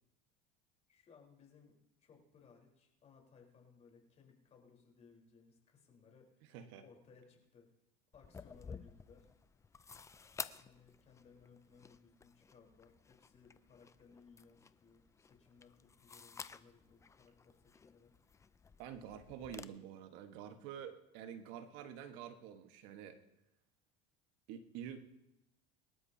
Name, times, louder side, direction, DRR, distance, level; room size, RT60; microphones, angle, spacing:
voice 1, 0.9-6.4 6.8-7.7 8.1-9.3 10.2-18.1, left 5 dB, 35° left, 0 dB, 4.0 m, -63 dB
voice 2, 6.5-6.8 18.8-23.2 24.5-25.0, right 9 dB, 70° right, 7 dB, 1.3 m, -48 dB
sound 1, 8.1-19.6, left 5 dB, 15° left, 0.5 m, -53 dB
24.0 x 12.5 x 2.8 m, 0.91 s
supercardioid pair, 120°, 20 cm